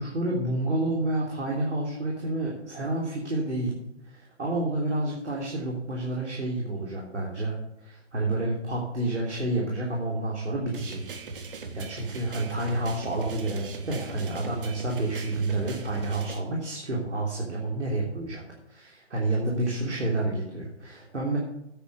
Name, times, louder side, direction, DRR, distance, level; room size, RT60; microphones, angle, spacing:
voice 1, 0.0-3.8 4.0-11.2 11.7-18.4 18.7-21.4, right 2 dB, 70° right, -3 dB, 3.3 m, -29 dB
sound 1, 10.7-16.4, right 4 dB, 45° right, 1.8 m, -38 dB
9.3 x 8.5 x 6.8 m, 0.87 s
figure-of-eight pair, 135°, 36 cm